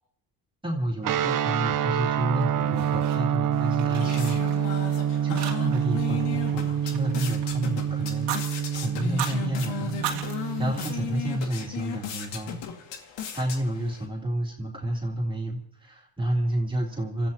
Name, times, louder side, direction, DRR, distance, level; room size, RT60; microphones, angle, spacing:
voice 1, 0.6-12.6 13.3-17.3, right 1 dB, 10° right, -2 dB, 3.4 m, -30 dB
sound 1, 1.0-11.4, right 9 dB, 45° right, 0.9 m, -27 dB
Fire, 2.4-3.5 3.7-4.9 5.4-5.9 6.2-7.6 8.1-8.4 9.0-9.4 9.9-11.5, right 9 dB, 65° right, 2.5 m, -37 dB
sound 2, 3.5-14.0, left 7 dB, 75° left, 2.2 m, -36 dB
29.0 x 14.5 x 3.0 m, 0.75 s
supercardioid pair, 75°, 43 cm